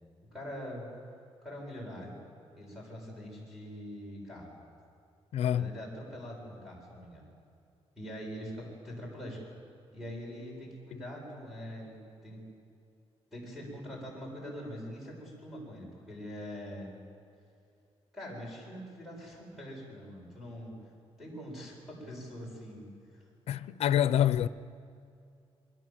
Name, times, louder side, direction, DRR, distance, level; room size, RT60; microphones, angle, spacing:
voice 1, 0.3-0.9 1.4-2.2 2.5-4.5 5.5-7.2 8.0-9.5 9.9-12.0 12.2-12.4 13.3-16.9 18.1-20.8 21.2-23.2, equal, ahead, 7.7 m, -43 dB
voice 2, 5.3-5.7 10.9-11.0 23.5-24.5, left 10 dB, 75° left, 0.7 m, -26 dB
28.5 x 22.5 x 7.7 m
wide cardioid pair, 175°, 11 cm